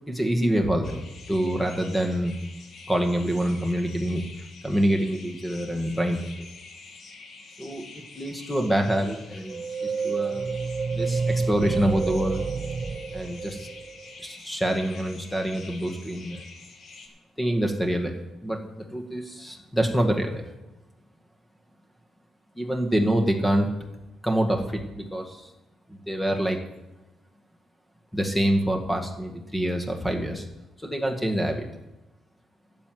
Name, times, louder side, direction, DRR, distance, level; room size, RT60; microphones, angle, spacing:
voice 1, 0.1-2.4 2.9-4.2 4.6-6.2 7.6-10.5 10.9-12.4 13.1-13.7 14.2-16.4 17.4-18.1 18.4-20.4 22.6-23.7 24.2-25.5 26.1-26.6 28.1-30.5 30.8-31.7, right 1 dB, 5° left, 3 dB, 1.9 m, -26 dB
sound 1, 0.8-17.1, left 4 dB, 60° left, 2.4 m, -47 dB
sound 2, 9.5-14.1, right 4 dB, 35° right, 0.7 m, -29 dB
11.5 x 7.6 x 7.9 m, 0.98 s
cardioid pair, 90°, 0 cm